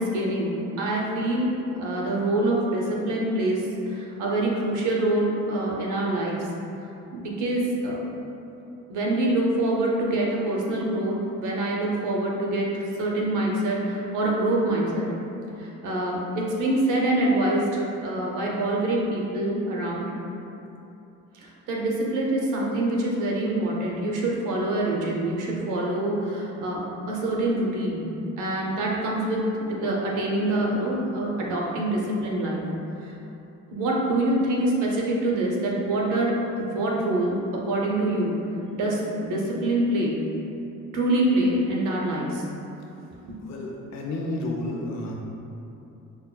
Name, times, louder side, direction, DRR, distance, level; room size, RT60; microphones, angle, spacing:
voice 1, 0.0-6.5 7.1-8.0 8.9-15.1 15.6-20.1 21.3-28.1 28.4-32.7 33.0-33.2 33.7-38.4 38.7-40.2 40.9-42.4 43.1-43.4, right 1 dB, 85° right, -2 dB, 0.7 m, -25 dB
voice 2, 43.4-45.1, left 1 dB, 60° left, -1 dB, 0.6 m, -31 dB
5.4 x 2.3 x 2.2 m, 2.9 s
cardioid pair, 90°, 30 cm